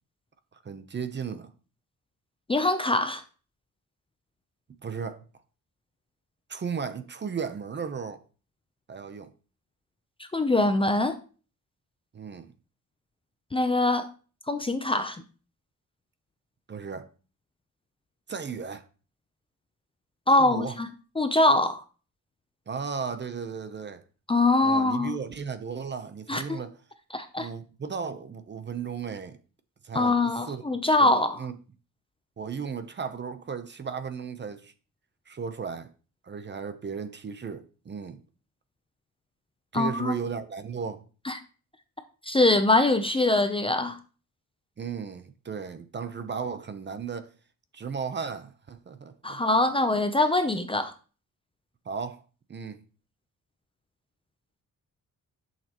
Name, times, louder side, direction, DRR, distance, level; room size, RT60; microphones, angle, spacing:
voice 1, 0.6-1.5 4.8-5.2 6.5-8.2 8.9-9.3 12.1-12.5 16.7-17.1 18.3-18.8 20.4-20.8 22.7-24.0 24.6-26.8 27.4-29.4 29.8-30.7 31.0-31.5 32.4-34.7 35.3-35.9 36.2-38.2 39.7-41.0 44.8-47.3 47.7-49.4 51.9-52.2 52.5-52.8, right 6 dB, 30° right, 0.7 m, -35 dB
voice 2, 2.5-3.2 10.3-11.2 13.5-14.1 14.5-15.2 20.3-20.9 21.2-21.8 24.3-25.1 26.3-26.6 27.1-27.5 29.9-31.5 39.7-40.2 41.3-41.4 42.2-44.0 49.2-50.9, left 2 dB, 15° left, 0.6 m, -23 dB
11.0 x 6.6 x 3.0 m
wide cardioid pair, 170°, 34 cm